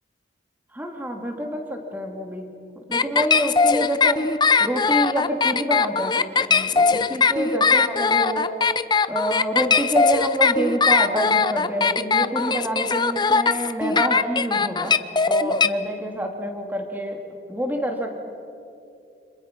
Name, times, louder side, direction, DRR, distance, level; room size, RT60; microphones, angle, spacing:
voice 1, 0.7-2.5 2.9-4.3 4.6-8.5 9.1-15.0 15.2-17.2 17.5-18.2, equal, 10° right, 3 dB, 2.6 m, -27 dB
sound 1, 2.9-15.7, left 5 dB, 25° left, 0.6 m, -20 dB
29.5 x 26.5 x 6.1 m, 2.6 s
head